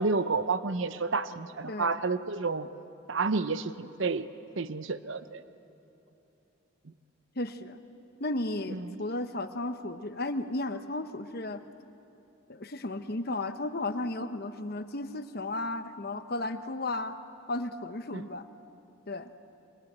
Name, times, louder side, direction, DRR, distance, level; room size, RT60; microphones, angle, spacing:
voice 1, 0.0-2.7 3.1-4.3 4.6-5.4 8.7-9.0 18.1-18.3, right 4 dB, 60° right, 13 dB, 0.8 m, -30 dB
voice 2, 1.7-2.0 7.4-7.8 8.2-11.6 12.5-17.2 17.5-18.5 19.1-19.3, left 2 dB, 45° left, 9 dB, 1.1 m, -34 dB
28.0 x 24.0 x 8.2 m, 3.0 s
head